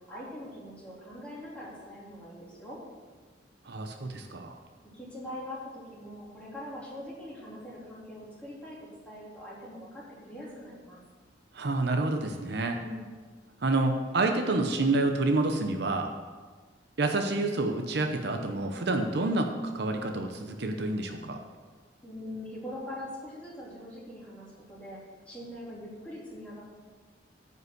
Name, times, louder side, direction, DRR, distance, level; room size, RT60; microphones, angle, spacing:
voice 1, 0.1-2.8 4.9-8.8 9.1-11.0 12.7-13.1 22.0-25.0 25.3-26.6, left 1 dB, 5° left, -7 dB, 3.4 m, -42 dB
voice 2, 3.7-4.6 11.5-12.8 13.6-16.1 17.0-21.4, right 2 dB, 65° right, 5 dB, 0.8 m, -28 dB
9.6 x 5.6 x 7.8 m, 1.4 s
head